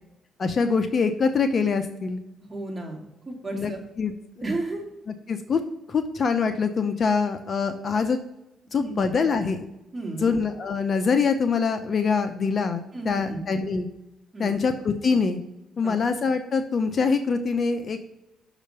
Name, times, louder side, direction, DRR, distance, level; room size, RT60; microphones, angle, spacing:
voice 1, 0.4-2.2 3.5-3.7 4.0-4.1 4.4-4.5 5.3-5.6 5.9-8.2 8.7-9.7 10.2-13.9 14.4-15.4 15.8-18.0, left 5 dB, 45° left, 8 dB, 0.7 m, -24 dB
voice 2, 2.5-3.8 4.4-4.8 8.8-9.0 9.9-10.3 12.9-13.4 14.3-14.6 15.8-16.0, right 2 dB, 20° right, -1 dB, 2.5 m, -33 dB
6.6 x 5.1 x 6.7 m, 0.90 s
cardioid pair, 90°, 0 cm